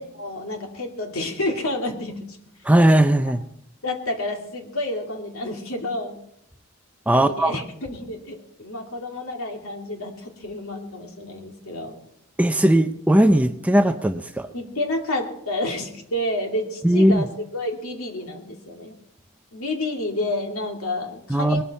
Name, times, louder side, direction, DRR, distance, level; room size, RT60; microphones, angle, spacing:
voice 1, 0.0-2.4 3.8-6.2 7.1-12.0 14.5-18.9 19.5-21.6, left 1 dB, 75° left, 2 dB, 2.6 m, -29 dB
voice 2, 2.6-3.4 7.1-7.6 12.4-14.5 16.8-17.2 21.3-21.6, right 1 dB, 5° right, 8 dB, 0.5 m, -18 dB
20.5 x 12.5 x 4.2 m, 0.74 s
head